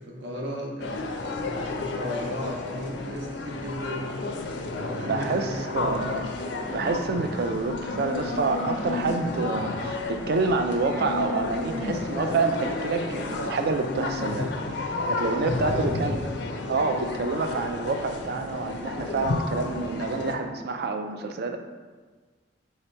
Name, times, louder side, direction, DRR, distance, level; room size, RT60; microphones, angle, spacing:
voice 1, 0.0-4.1 4.7-6.9 15.7-16.2, equal, 75° right, -1 dB, 0.8 m, -35 dB
sound 1, 0.8-20.3, left 3 dB, 65° left, 0.4 m, -31 dB
voice 2, 5.1-6.3 6.7-16.2 16.7-21.6, right 3 dB, 55° right, 6 dB, 0.3 m, -28 dB
3.3 x 2.8 x 4.4 m, 1.4 s
head